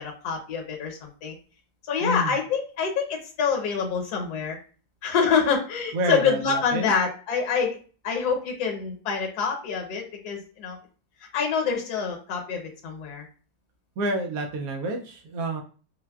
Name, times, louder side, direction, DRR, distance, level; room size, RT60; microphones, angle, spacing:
voice 1, 0.0-1.4 1.9-4.6 5.0-7.8 8.0-10.8 11.3-13.2, left 6 dB, 65° left, 2 dB, 1.2 m, -26 dB
voice 2, 2.0-2.4 5.9-6.9 14.0-15.6, right 1 dB, 75° right, 2 dB, 0.8 m, -28 dB
4.0 x 2.1 x 2.3 m, 0.38 s
omnidirectional pair, 2.0 m